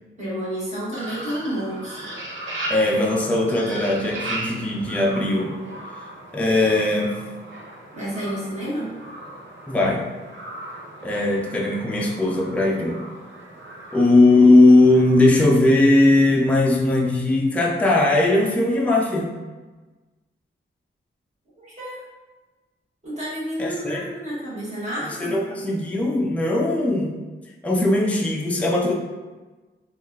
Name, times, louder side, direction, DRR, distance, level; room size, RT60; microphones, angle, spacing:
voice 1, 0.2-2.1 7.9-8.9 21.6-22.0 23.0-25.3, equal, 35° right, -9 dB, 1.4 m, -30 dB
sound 1, 0.9-15.3, right 1 dB, 70° right, 0.6 m, -37 dB
voice 2, 2.7-5.5 6.3-7.1 9.7-10.0 11.0-13.0 13.9-19.3 23.6-24.0 25.2-27.2 27.6-28.9, left 2 dB, 5° left, -1 dB, 0.3 m, -19 dB
3.8 x 2.3 x 2.3 m, 1.2 s
wide cardioid pair, 125°, 21 cm